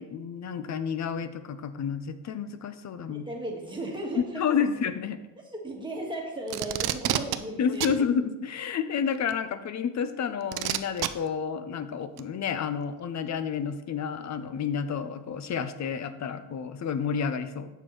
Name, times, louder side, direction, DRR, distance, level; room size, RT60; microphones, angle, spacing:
voice 1, 0.0-3.3 4.2-5.2 7.6-17.7, left 7 dB, 35° left, 11 dB, 0.6 m, -30 dB
voice 2, 3.0-4.6 5.6-7.9, right 1 dB, 10° right, -2 dB, 1.6 m, -36 dB
Packing tape duct tape, 6.5-7.4 7.8-8.0 9.3-9.4 10.5-11.1 12.2-12.3, right 13 dB, 50° right, 0.5 m, -28 dB
7.7 x 6.6 x 3.1 m, 1.0 s
cardioid pair, 110°, 48 cm